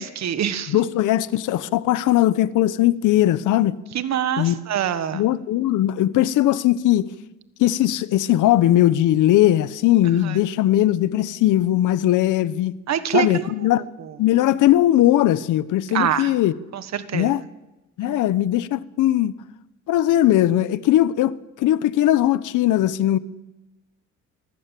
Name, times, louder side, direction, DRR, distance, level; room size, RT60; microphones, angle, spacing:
voice 1, 0.0-0.8 3.9-5.2 10.2-10.4 12.9-14.1 15.9-16.3 16.7-17.3 18.0-18.2, right 9 dB, 65° right, 1.5 m, -25 dB
voice 2, 0.7-3.8 4.4-4.6 5.1-7.1 7.6-12.8 13.1-13.8 14.2-16.5 17.1-17.4 18.0-19.3 19.9-23.2, left 13 dB, 85° left, 0.9 m, -19 dB
24.5 x 16.5 x 7.6 m
cardioid pair, 90°, 30 cm